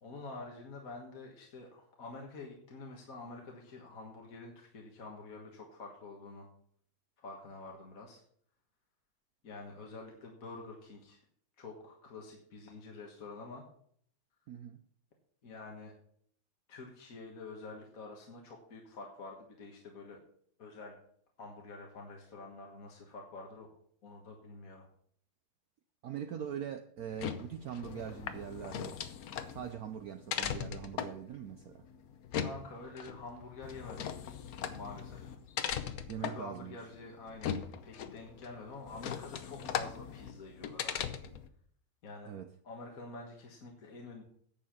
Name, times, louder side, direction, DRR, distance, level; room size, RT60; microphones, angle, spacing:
voice 1, 0.0-6.5 7.2-8.2 9.4-11.2 11.6-13.6 15.4-15.9 16.7-20.2 20.6-21.0 21.4-23.7 24.0-24.9 32.4-34.1 34.7-35.3 36.2-37.6 37.8-41.0 42.0-42.3 42.6-44.2, left 3 dB, 45° left, 1.7 m, -47 dB
voice 2, 14.5-14.8 26.0-29.0 29.5-31.8 36.1-36.8 42.3-42.5, right 9 dB, 85° right, 0.8 m, -42 dB
sound 1, 27.0-41.5, left 8 dB, 65° left, 0.9 m, -40 dB
10.0 x 7.2 x 5.8 m
omnidirectional pair, 2.3 m